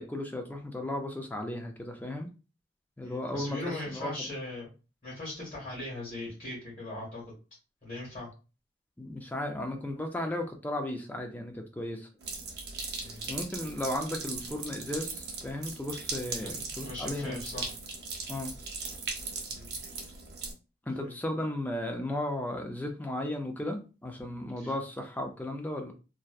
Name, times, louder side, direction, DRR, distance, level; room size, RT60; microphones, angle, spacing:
voice 1, 0.0-2.3 3.0-4.3 9.0-12.1 13.3-17.4 18.3-18.5 20.9-25.9, left 1 dB, 10° left, 3 dB, 0.3 m, -35 dB
voice 2, 3.0-4.7 5.0-7.2 7.8-8.3 13.0-13.2 16.4-17.6 19.5-19.7 20.9-21.2 24.6-24.7, left 1 dB, 40° left, -7 dB, 1.3 m, -39 dB
sound 1, 12.2-20.5, right 4 dB, 65° right, 0.6 m, -39 dB
2.6 x 2.1 x 2.3 m, 0.32 s
head